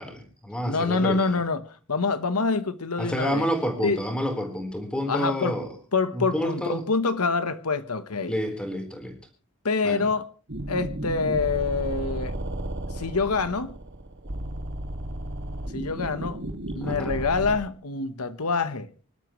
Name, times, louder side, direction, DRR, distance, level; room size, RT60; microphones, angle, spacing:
voice 1, 0.0-1.4 3.0-5.7 6.1-6.8 8.3-9.1 9.8-10.0 16.8-17.3, equal, 5° left, 4.1 m, -29 dB
voice 2, 0.7-3.5 3.8-4.0 5.1-5.6 5.9-8.3 9.6-10.3 10.7-12.4 12.9-13.8 15.7-16.4 16.7-18.9, left 4 dB, 80° left, 1.2 m, -26 dB
sound 1, 10.5-17.6, right 1 dB, 55° right, 2.1 m, -33 dB
26.0 x 12.5 x 3.2 m
head